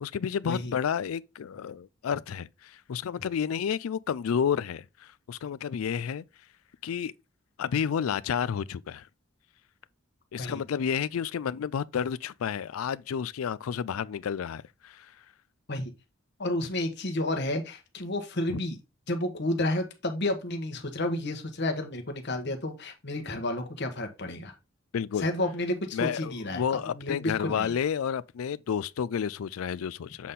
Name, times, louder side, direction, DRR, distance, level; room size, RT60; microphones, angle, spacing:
voice 1, 0.0-6.2 6.8-7.1 7.6-9.1 10.3-15.1 18.5-18.6 24.9-25.3 25.9-30.3, left 7 dB, 90° left, 0.4 m, -31 dB
voice 2, 16.4-18.8 19.1-24.5 25.2-27.7, left 1 dB, 55° left, 1.2 m, -31 dB
7.4 x 4.1 x 3.6 m
head